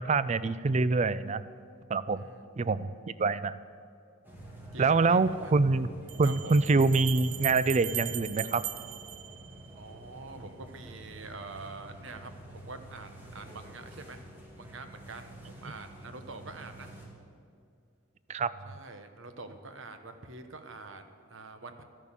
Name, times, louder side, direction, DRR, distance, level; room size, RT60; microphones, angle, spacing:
voice 1, 0.0-1.4 1.9-2.2 2.6-3.6 4.8-5.9 6.2-8.6 18.3-18.5, right 3 dB, 30° right, 15 dB, 0.4 m, -25 dB
voice 2, 2.2-2.5 4.7-5.5 6.2-6.5 9.7-14.2 14.6-16.9 18.6-21.8, right 3 dB, 60° right, 8 dB, 1.0 m, -46 dB
sound 1, 4.2-17.1, right 1 dB, 10° right, 2.2 m, -48 dB
Bell, 4.5-4.6 6.1-10.0, right 12 dB, 80° right, 0.6 m, -39 dB
12.5 x 11.0 x 7.4 m, 2.3 s
head